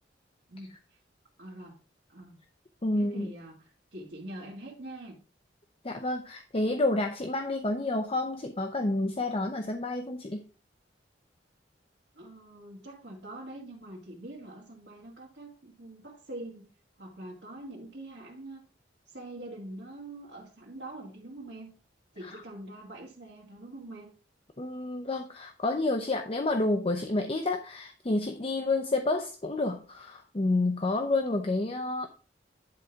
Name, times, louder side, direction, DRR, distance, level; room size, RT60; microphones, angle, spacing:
voice 1, 0.5-1.0 1.4-1.8 2.1-2.4 3.0-5.2 12.1-16.7 17.0-18.6 19.1-21.7 22.1-24.1, right 1 dB, 80° right, -5 dB, 2.1 m, -44 dB
voice 2, 2.8-3.3 5.8-10.4 22.2-22.4 24.6-32.1, left 2 dB, 30° left, 4 dB, 0.7 m, -29 dB
10.5 x 3.8 x 4.6 m, 0.37 s
head